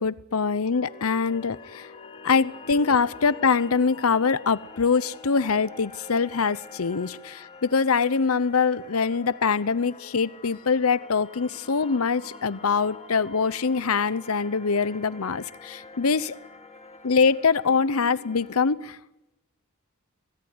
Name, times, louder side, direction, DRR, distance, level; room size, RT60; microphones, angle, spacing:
voice 1, 0.0-1.9 2.2-16.4 17.0-19.0, left 5 dB, 80° left, 17 dB, 0.8 m, -24 dB
sound 1, 0.7-18.7, left 3 dB, 30° left, 2.2 m, -46 dB
26.0 x 17.5 x 9.7 m, 0.94 s
head